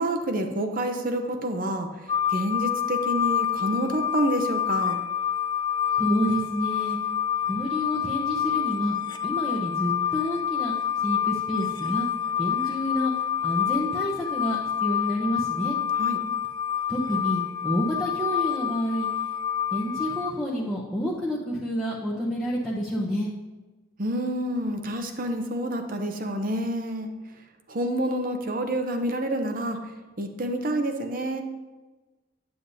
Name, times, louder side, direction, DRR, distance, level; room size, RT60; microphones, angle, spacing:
voice 1, 0.0-1.9 2.3-5.0 16.0-16.2 24.0-27.1 27.7-29.8 30.2-31.4, right 1 dB, 45° right, 5 dB, 0.7 m, -28 dB
sound 1, 2.1-20.3, left 9 dB, 20° left, 0.3 m, -28 dB
voice 2, 6.0-7.0 7.5-9.0 9.2-10.7 11.0-12.1 12.4-13.1 13.4-15.8 16.9-19.1 19.7-23.3, equal, ahead, -5 dB, 0.7 m, -28 dB
9.0 x 7.8 x 2.7 m, 1.2 s
head